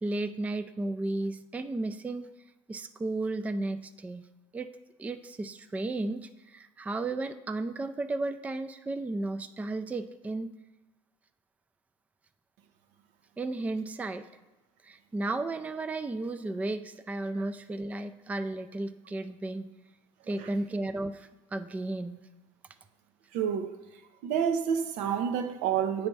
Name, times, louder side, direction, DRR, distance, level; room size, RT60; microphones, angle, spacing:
voice 1, 0.0-2.3 2.7-4.3 4.5-4.7 5.0-10.5 13.4-14.2 14.8-19.7 20.3-22.2, right 2 dB, 10° right, 0.3 m, -34 dB
voice 2, 23.3-23.7 24.2-26.1, right 8 dB, 75° right, 0.7 m, -28 dB
8.1 x 3.4 x 5.3 m
cardioid pair, 110°, 12 cm